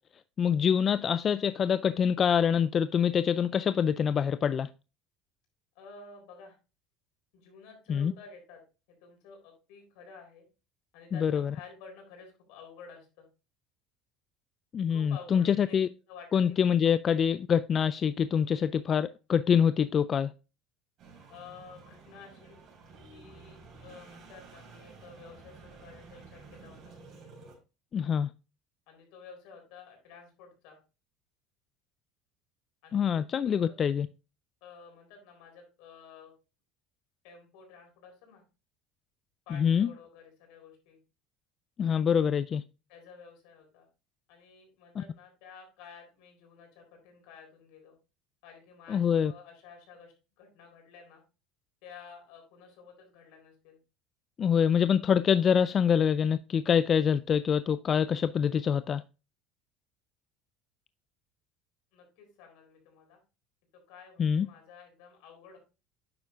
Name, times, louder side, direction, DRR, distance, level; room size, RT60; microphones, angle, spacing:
voice 1, 0.4-4.7 7.9-8.1 11.2-11.5 14.7-15.9 16.3-20.3 27.9-28.3 32.9-34.1 39.6-39.9 41.8-42.6 48.9-49.3 54.4-59.0 64.2-64.5, left 7 dB, 40° left, 0.3 m, -25 dB
voice 2, 5.7-6.6 7.3-8.6 8.9-10.4 10.9-13.3 14.9-15.8 16.1-16.6 16.8-17.3 21.3-22.6 23.1-27.0 28.9-30.8 32.8-33.8 34.6-36.3 37.2-38.4 39.5-41.0 42.9-43.9 44.3-48.0 48.4-51.2 51.8-53.8 61.9-63.2 63.9-65.6, left 5 dB, 75° left, 3.9 m, -52 dB
sound 1, 21.0-27.6, right 4 dB, 55° right, 4.4 m, -52 dB
9.3 x 7.0 x 2.5 m
supercardioid pair, 100°, 0 cm